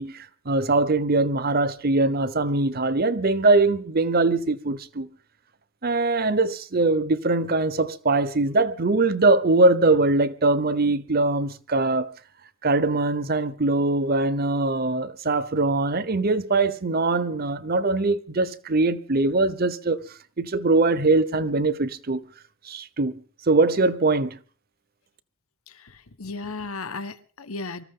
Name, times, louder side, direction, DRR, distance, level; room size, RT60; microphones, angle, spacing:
voice 1, 0.0-5.1 5.8-12.1 12.6-20.0 20.4-22.2 22.7-23.2 23.5-24.4, right 3 dB, 45° right, 0.8 m, -22 dB
voice 2, 25.7-27.8, left 3 dB, 90° left, 1.3 m, -35 dB
24.5 x 14.5 x 3.8 m
head